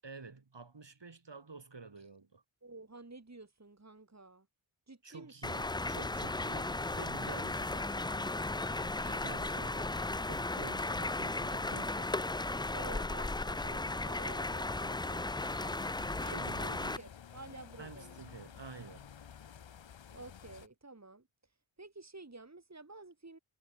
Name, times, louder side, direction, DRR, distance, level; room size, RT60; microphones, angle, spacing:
voice 1, 0.0-2.4 5.0-8.5 9.2-10.0 10.2-12.2 16.3-16.9 17.8-19.1, right 4 dB, 60° right, 6.8 m, -50 dB
voice 2, 2.6-4.5 4.9-5.7 8.7-9.6 12.7-15.8 16.2-18.2 20.1-21.3 21.8-23.4, right 3 dB, 35° right, 4.3 m, -51 dB
sound 1, 5.4-17.0, left 2 dB, 10° left, 0.4 m, -35 dB
sound 2, 15.4-20.7, left 8 dB, 65° left, 1.0 m, -52 dB
wide cardioid pair, 70°, 49 cm